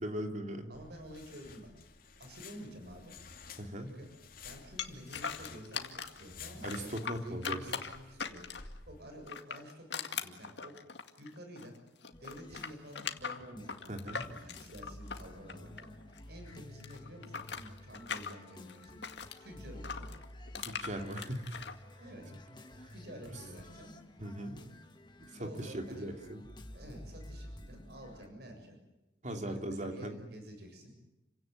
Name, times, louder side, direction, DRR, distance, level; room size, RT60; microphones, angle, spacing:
voice 1, 0.0-0.7 3.6-3.9 6.6-7.6 13.9-14.2 20.6-21.6 22.8-22.9 24.2-24.6 25.4-26.4 29.2-30.2, right 1 dB, 40° right, 4 dB, 3.0 m, -39 dB
sound 1, 0.7-9.3, left 5 dB, 50° left, 2.6 m, -53 dB
voice 2, 0.7-1.7 2.2-3.1 3.8-4.1 4.4-8.5 8.9-10.7 11.2-11.8 12.2-19.0 19.4-20.2 22.0-22.3 22.9-23.9 25.4-26.1 26.7-28.8 29.3-31.1, equal, 60° right, 4 dB, 7.1 m, -50 dB
sound 2, 4.8-6.2 6.6-8.8 9.2-11.8 12.0-16.2 16.5-19.4 19.8-21.7, left 6 dB, 70° left, 2.1 m, -40 dB
sound 3, 12.1-28.3, left 1 dB, 25° left, 1.8 m, -51 dB
30.0 x 17.0 x 9.4 m, 0.95 s
head